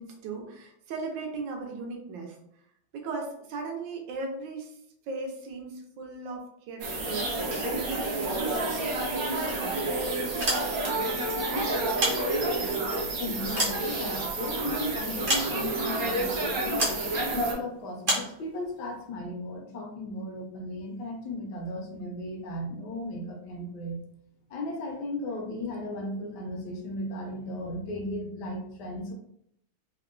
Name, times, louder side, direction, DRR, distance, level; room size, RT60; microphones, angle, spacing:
voice 1, 0.0-2.4 2.9-4.7 5.1-9.8, right 3 dB, 80° right, 2 dB, 1.3 m, -37 dB
sound 1, 6.8-17.5, right 2 dB, 60° right, 1.0 m, -29 dB
sound 2, 10.4-11.1 11.8-12.8 13.2-14.5 15.3-15.9 16.8-17.1 18.0-18.4, right 1 dB, 45° right, 0.6 m, -29 dB
voice 2, 13.2-16.9 17.3-24.0 24.5-29.1, left 1 dB, 70° left, 1 dB, 1.1 m, -36 dB
3.5 x 2.2 x 2.4 m, 0.72 s
omnidirectional pair, 2.1 m